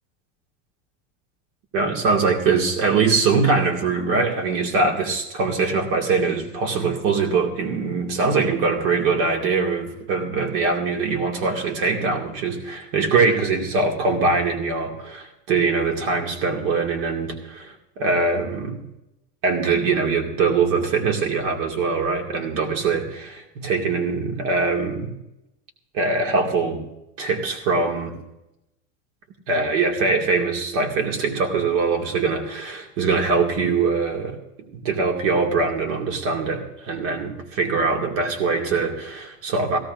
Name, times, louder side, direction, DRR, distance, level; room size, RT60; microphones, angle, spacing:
voice 1, 1.7-18.8 19.4-25.1 25.9-26.8 27.2-28.2 29.5-34.4 34.7-39.8, right 4 dB, 70° right, 3 dB, 2.4 m, -22 dB
17.5 x 16.0 x 2.6 m, 0.88 s
supercardioid pair, 145°, 36 cm